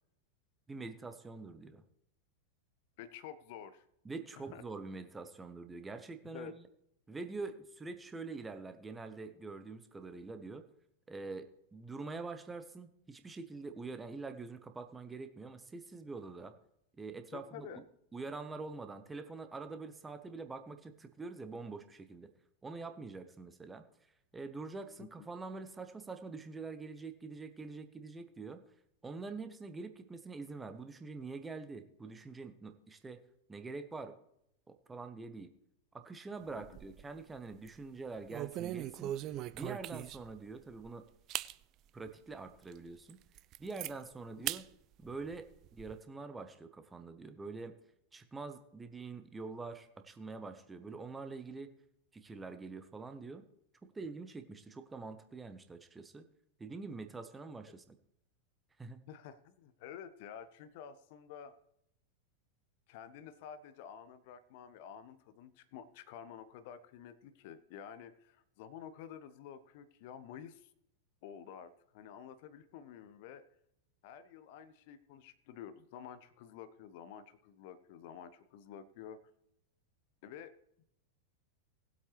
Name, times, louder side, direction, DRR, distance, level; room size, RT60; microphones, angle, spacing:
voice 1, 0.7-1.8 4.0-6.6 7.1-10.6 11.1-16.5 17.0-17.8 18.1-22.3 22.6-23.8 24.3-28.6 29.0-33.2 33.5-34.2 34.7-35.5 35.9-39.1 39.5-41.0 41.9-43.2 43.6-44.7 45.0-47.7 48.1-51.7 52.1-53.5 53.8-56.2 56.6-57.9 58.8-59.0, right 3 dB, 10° right, 9 dB, 1.0 m, -45 dB
voice 2, 3.0-3.9 4.5-4.6 6.3-6.5 17.3-17.8 25.0-25.1 59.1-61.6 62.9-70.7 71.2-73.4 74.0-79.3 80.2-80.5, left 8 dB, 50° left, 14 dB, 0.7 m, -50 dB
sound 1, 36.5-37.2 37.5-37.8 38.3-40.4 40.8-40.9 41.3-41.5 42.1-42.2 42.7-42.8 43.1-43.9 44.5-44.6 45.0-45.9, right 13 dB, 35° right, 0.4 m, -40 dB
19.0 x 8.0 x 3.3 m, 0.77 s
figure-of-eight pair, 90°, 0 cm